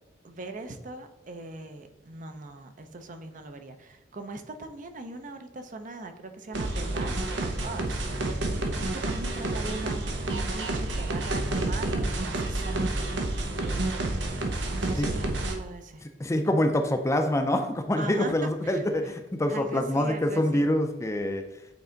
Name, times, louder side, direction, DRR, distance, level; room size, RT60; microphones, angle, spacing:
voice 1, 0.2-12.9 14.7-16.1 18.0-19.1 19.5-20.7, right 2 dB, 45° right, 7 dB, 0.6 m, -40 dB
sound 1, 6.5-15.6, right 2 dB, 90° right, 0.8 m, -29 dB
voice 2, 16.2-21.4, left 1 dB, 15° left, 6 dB, 0.4 m, -26 dB
8.0 x 3.3 x 3.8 m, 0.94 s
head